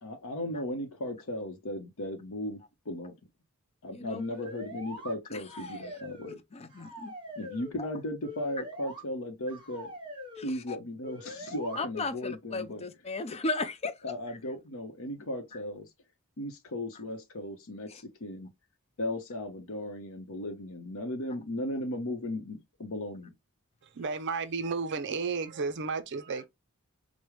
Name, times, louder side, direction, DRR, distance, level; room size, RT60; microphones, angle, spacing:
voice 1, 0.0-3.1 3.8-6.4 7.4-9.9 10.4-12.8 14.0-15.9 16.4-18.5 19.0-23.3, left 1 dB, 70° left, 0.7 m, -36 dB
voice 2, 3.9-4.2 5.3-5.4 6.5-7.1 7.8-7.9 10.4-10.8 11.8-13.9 17.9-18.0, left 3 dB, 30° left, 0.4 m, -35 dB
sound 1, 4.1-5.1 5.5-6.4 6.7-7.7 8.2-9.0 9.5-10.5 11.0-11.8, equal, 20° right, 2.4 m, -43 dB
voice 3, 23.8-26.5, right 4 dB, 55° right, 0.5 m, -33 dB
4.9 x 2.1 x 3.0 m
head